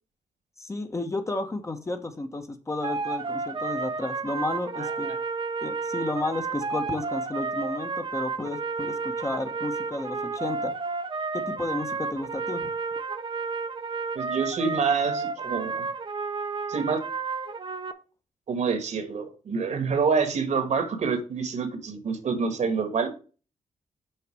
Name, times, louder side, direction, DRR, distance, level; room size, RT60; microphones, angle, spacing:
voice 1, 0.6-5.1 5.6-10.7 11.3-12.7, left 2 dB, 20° left, 6 dB, 1.1 m, -32 dB
sound 1, 2.8-17.9, right 4 dB, 40° right, 0.8 m, -31 dB
voice 2, 4.7-5.2 14.1-15.8 16.7-17.0 18.5-23.1, right 5 dB, 65° right, 8 dB, 1.7 m, -27 dB
6.6 x 4.1 x 6.1 m, 0.36 s
cardioid pair, 100°, 13 cm